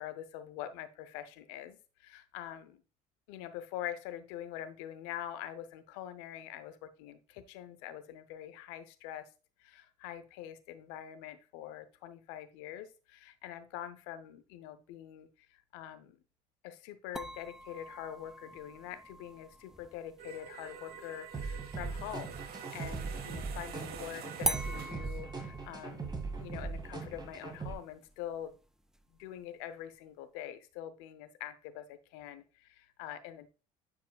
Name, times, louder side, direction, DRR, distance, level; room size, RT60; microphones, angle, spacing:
voice 1, 0.0-2.8 3.3-9.3 9.6-16.2 16.6-26.1 26.4-28.5 29.2-33.5, left 11 dB, 80° left, 12 dB, 0.7 m, -44 dB
sound 1, 17.2-22.7 24.4-29.4, right 1 dB, 5° right, 0.4 m, -43 dB
sound 2, 20.2-25.2, right 8 dB, 60° right, 1.0 m, -47 dB
sound 3, 21.3-27.7, right 4 dB, 25° right, 1.9 m, -40 dB
9.5 x 4.7 x 2.3 m, 0.33 s
hypercardioid pair, 70°, 18 cm